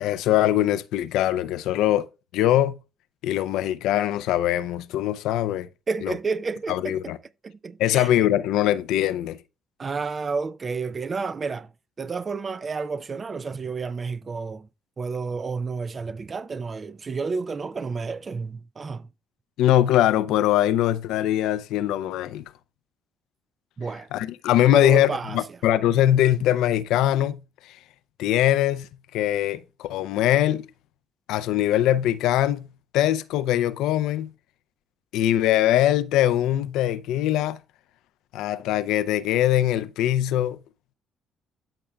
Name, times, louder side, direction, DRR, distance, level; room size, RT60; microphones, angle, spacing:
voice 1, 0.0-2.1 2.3-2.8 3.2-5.7 6.0-6.1 6.7-7.2 7.8-9.4 19.6-22.4 24.1-27.8 28.2-30.7 31.3-32.7 32.9-34.3 35.1-37.6 38.3-40.6, left 12 dB, 75° left, 0.5 m, -22 dB
voice 2, 5.9-7.1 7.4-8.1 9.8-11.7 12.0-14.7 15.0-19.1 23.8-24.1 24.7-25.4, right 4 dB, 40° right, 0.5 m, -30 dB
13.0 x 5.5 x 2.3 m
hypercardioid pair, 55°, 0 cm